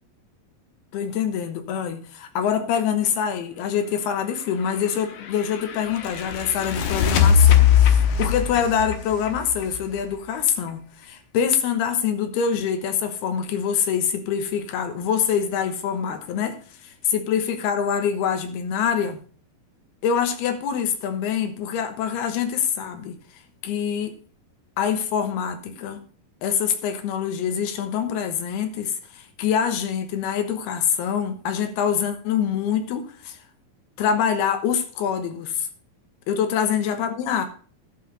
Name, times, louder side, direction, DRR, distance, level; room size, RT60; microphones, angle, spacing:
voice 1, 0.9-19.2 20.0-23.2 23.6-24.2 24.8-26.0 26.4-33.4 34.0-35.7 36.3-37.5, left 8 dB, 85° left, 3.1 m, -25 dB
sound 1, 4.6-10.3, left 8 dB, 65° left, 2.1 m, -20 dB
11.5 x 5.9 x 6.3 m
omnidirectional pair, 4.5 m